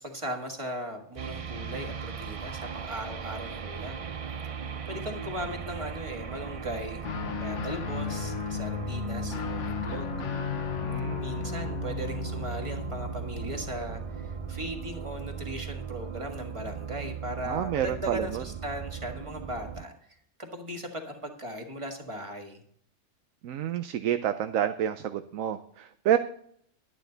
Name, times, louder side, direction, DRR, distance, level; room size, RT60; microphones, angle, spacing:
voice 1, 0.0-4.1 4.6-10.3 11.2-19.9 20.4-22.6, equal, 25° right, 3 dB, 1.7 m, -38 dB
sound 1, 1.2-19.8, right 7 dB, 50° right, 0.4 m, -38 dB
Guitar, 7.0-14.7, left 7 dB, 65° left, 1.2 m, -35 dB
voice 2, 10.8-11.2 17.4-18.4 23.4-26.2, right 10 dB, 80° right, 9 dB, 1.0 m, -29 dB
11.5 x 10.0 x 3.9 m, 0.64 s
omnidirectional pair, 1.4 m